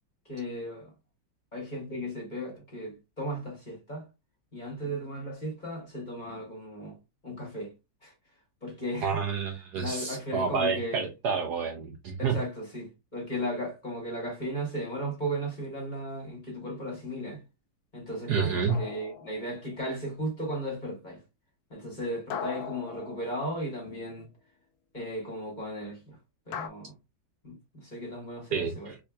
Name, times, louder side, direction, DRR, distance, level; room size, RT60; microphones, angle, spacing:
voice 1, 0.3-0.9 1.5-4.1 4.5-7.0 7.2-7.7 8.0-8.1 8.6-9.1 9.8-11.1 12.2-17.4 17.9-21.2 21.7-24.3 24.9-26.2 26.5-27.0 27.4-29.0, equal, 25° left, 1.7 m, -36 dB
voice 2, 9.0-12.4 18.3-18.8 28.5-29.0, right 6 dB, 70° right, 1.0 m, -29 dB
sound 1, 18.7-19.9 22.3-24.0 26.5-26.7, left 7 dB, 90° left, 1.4 m, -39 dB
3.7 x 3.4 x 2.3 m
omnidirectional pair, 2.1 m